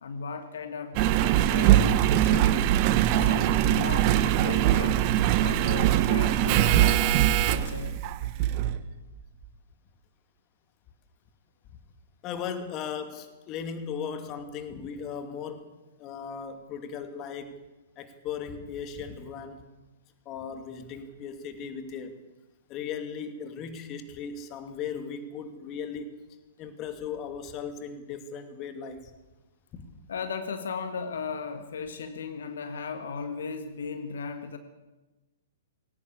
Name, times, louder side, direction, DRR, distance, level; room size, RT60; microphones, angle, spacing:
voice 1, 0.0-2.7 3.0-5.0 5.4-7.0 7.5-8.0 30.1-34.6, left 5 dB, 65° left, 9 dB, 1.8 m, -36 dB
Engine, 1.0-8.8 9.4-9.5, right 12 dB, 40° right, 1.3 m, -22 dB
voice 2, 12.2-15.7 16.0-17.6 18.0-19.7 20.3-22.2 22.7-26.1 26.6-29.1 29.7-29.8, left 6 dB, 30° left, 8 dB, 2.5 m, -37 dB
20.5 x 18.0 x 8.6 m, 1.1 s
figure-of-eight pair, 115°, 0 cm